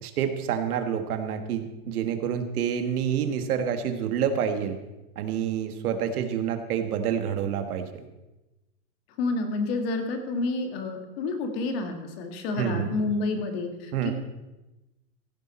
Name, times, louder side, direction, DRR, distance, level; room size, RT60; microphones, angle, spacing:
voice 1, 0.0-4.8 5.2-7.9 12.6-13.0 13.9-14.1, right 8 dB, 70° right, 8 dB, 1.6 m, -28 dB
voice 2, 9.2-14.1, left 3 dB, 40° left, 6 dB, 1.8 m, -29 dB
15.5 x 10.5 x 4.3 m, 1.0 s
supercardioid pair, 170°, 46 cm